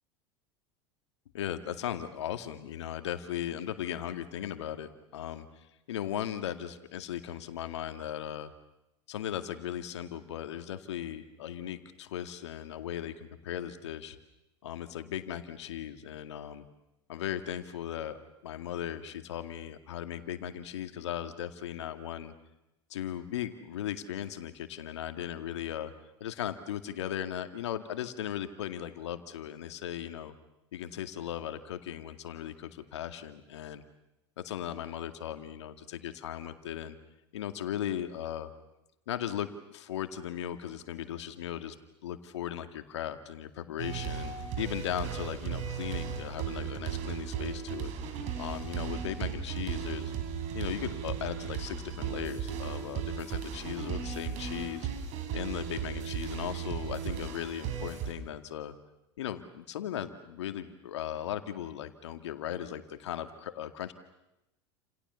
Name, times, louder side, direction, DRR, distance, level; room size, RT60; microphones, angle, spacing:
voice 1, 1.3-5.5 5.9-8.5 9.1-14.2 14.6-16.7 17.1-22.3 22.9-25.9 26.2-30.3 30.7-33.8 34.4-37.0 37.3-38.5 39.1-41.8 42.0-47.9 48.4-50.1 50.5-54.9 55.3-58.7 59.2-63.9, left 10 dB, 75° left, 9 dB, 2.1 m, -37 dB
sound 1, 43.8-58.1, right 8 dB, 50° right, 4.6 m, -36 dB
29.5 x 28.0 x 7.0 m, 0.91 s
hypercardioid pair, 80°, 15 cm